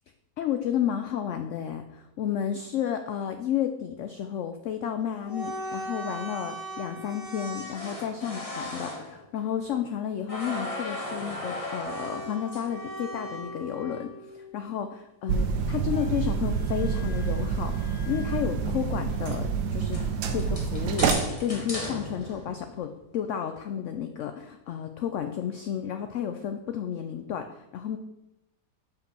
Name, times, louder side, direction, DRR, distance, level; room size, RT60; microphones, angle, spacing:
voice 1, 0.4-20.0 20.3-28.0, left 9 dB, 70° left, 8 dB, 0.7 m, -32 dB
sound 1, 5.2-10.0 10.3-14.5 15.9-18.6 19.1-19.2 19.9-22.9, left 1 dB, 20° left, 1.4 m, -38 dB
sound 2, 15.3-21.1, right 6 dB, 75° right, 1.4 m, -28 dB
5.4 x 5.2 x 6.6 m, 0.90 s
omnidirectional pair, 1.7 m